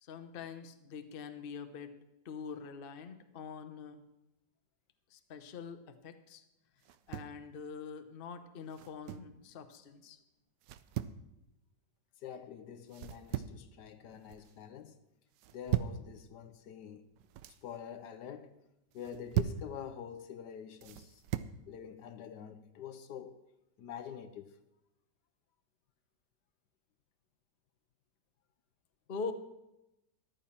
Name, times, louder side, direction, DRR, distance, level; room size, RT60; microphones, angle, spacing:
voice 1, 0.0-1.9 2.2-4.0 5.1-6.4 7.1-10.2 29.1-29.3, left 5 dB, 40° left, 0.8 m, -44 dB
sound 1, 6.8-7.4 8.7-9.3 10.6-11.2 12.9-13.7 14.0-14.5 15.4-16.0 17.1-17.6 18.9-19.7 20.8-21.6, right 12 dB, 75° right, 1.2 m, -37 dB
voice 2, 12.2-15.0 15.5-17.0 17.6-18.6 18.9-21.2 21.7-23.3 23.8-24.5, left 8 dB, 70° left, 1.3 m, -46 dB
14.0 x 11.5 x 4.3 m
omnidirectional pair, 2.0 m